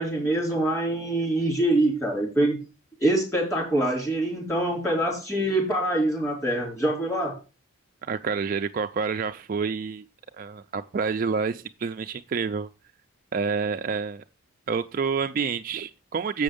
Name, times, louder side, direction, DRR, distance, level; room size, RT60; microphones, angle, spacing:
voice 1, 0.0-2.6 3.0-7.4, right 1 dB, 15° left, -3 dB, 4.2 m, -24 dB
voice 2, 8.0-10.0 10.4-12.7 13.3-14.2 14.7-16.4, right 5 dB, 40° right, 8 dB, 0.3 m, -28 dB
7.7 x 6.2 x 5.1 m, 0.32 s
head